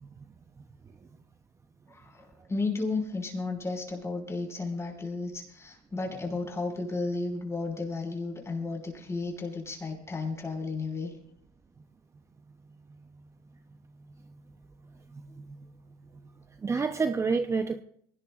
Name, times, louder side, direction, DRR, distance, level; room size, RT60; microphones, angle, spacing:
voice 1, 1.9-11.1, left 3 dB, 15° left, 1 dB, 5.6 m, -33 dB
voice 2, 15.1-15.6 16.6-17.8, right 4 dB, 20° right, 8 dB, 0.7 m, -29 dB
22.5 x 18.0 x 2.5 m, 0.70 s
supercardioid pair, 115°, 15 cm